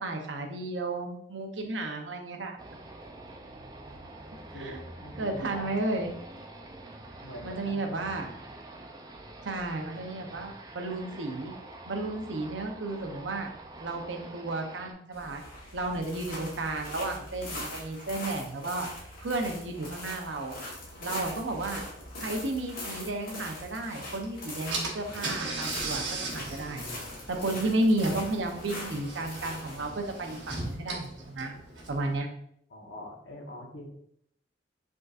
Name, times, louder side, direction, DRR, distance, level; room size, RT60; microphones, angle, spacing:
voice 1, 0.0-2.6 4.6-4.8 5.2-6.1 7.4-8.3 9.4-11.5 11.9-13.5 13.8-15.4 15.7-18.9 19.2-20.6 21.0-21.8 22.2-26.0 26.3-26.8 27.4-31.5 31.9-32.3, right 2 dB, 90° right, 4 dB, 0.8 m, -32 dB
sound 1, 2.6-14.9, right 2 dB, 20° right, 0.5 m, -46 dB
voice 2, 4.5-5.9 7.2-8.4 15.8-15.9 32.7-33.9, left 1 dB, 80° left, 0 dB, 1.1 m, -44 dB
sound 2, 15.1-32.0, left 1 dB, 55° left, 1.3 m, -42 dB
Car / Engine, 24.2-24.3 24.7-32.1, right 3 dB, 75° right, 1.2 m, -38 dB
5.2 x 3.7 x 2.5 m, 0.69 s
head